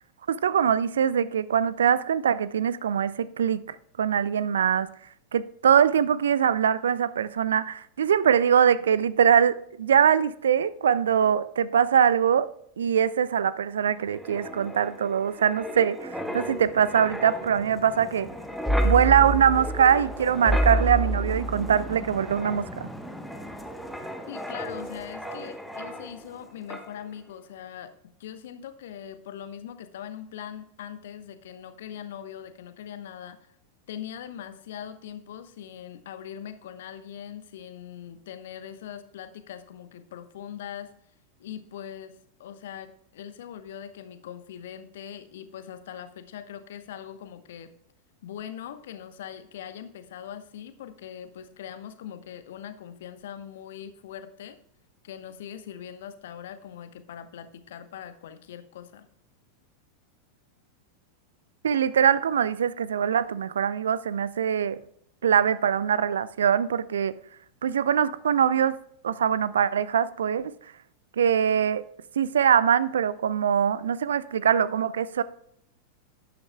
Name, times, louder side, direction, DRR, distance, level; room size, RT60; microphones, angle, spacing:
voice 1, 0.3-4.9 5.3-12.5 12.8-18.3 18.8-22.9 61.6-64.8 65.2-67.1 67.6-68.8 69.0-70.5 71.2-71.8 72.2-75.2, right 8 dB, 65° right, 0.4 m, -23 dB
Wind, 14.0-26.4 26.7-26.9, right 1 dB, ahead, 1.0 m, -31 dB
voice 2, 24.3-33.6 33.9-40.9 41.4-47.7 48.2-54.6 55.0-59.1, left 9 dB, 55° left, 0.9 m, -41 dB
12.0 x 9.3 x 2.2 m
figure-of-eight pair, 90°, 0 cm